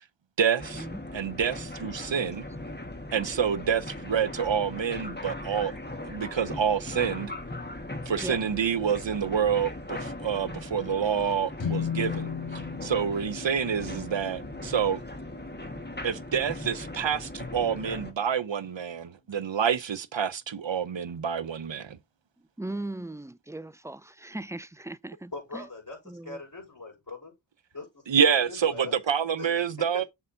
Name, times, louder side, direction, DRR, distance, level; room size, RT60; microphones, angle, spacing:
voice 1, 0.4-0.8 1.1-2.5 3.1-5.7 6.1-7.3 8.1-12.3 12.8-15.0 16.0-22.0 28.1-30.0, right 7 dB, 65° right, 0.8 m, -27 dB
sound 1, 0.6-18.1, left 2 dB, 20° left, 1.4 m, -39 dB
voice 2, 6.0-6.6 8.2-8.4 10.3-10.6 13.9-14.3 22.4-25.7 26.1-26.4, right 2 dB, 5° right, 0.3 m, -39 dB
sound 2, 11.6-18.0, left 7 dB, 65° left, 1.8 m, -38 dB
voice 3, 25.3-26.0 26.2-27.3 27.7-29.7, left 3 dB, 45° left, 4.9 m, -41 dB
6.9 x 4.8 x 3.8 m
wide cardioid pair, 45°, 48 cm